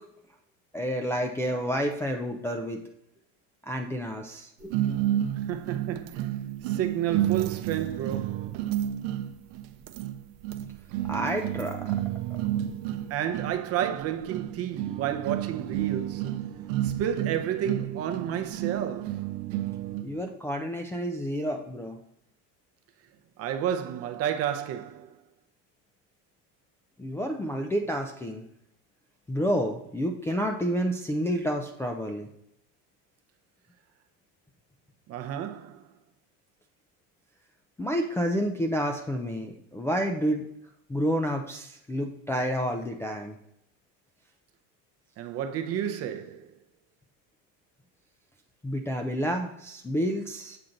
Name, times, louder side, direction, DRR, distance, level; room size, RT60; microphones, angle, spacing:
voice 1, 0.7-2.8 3.6-4.7 11.1-12.0 20.0-22.0 27.0-28.4 29.3-32.3 37.8-40.5 40.9-43.4 48.6-50.6, equal, 5° left, 0.4 m, -29 dB
sound 1, 4.7-20.2, right 12 dB, 75° right, 0.7 m, -31 dB
voice 2, 5.4-8.6 13.1-16.5 16.8-19.4 23.4-25.2 35.1-35.9 45.2-46.5, right 10 dB, 40° right, 0.6 m, -31 dB
7.8 x 5.6 x 3.9 m
cardioid pair, 140°, 37 cm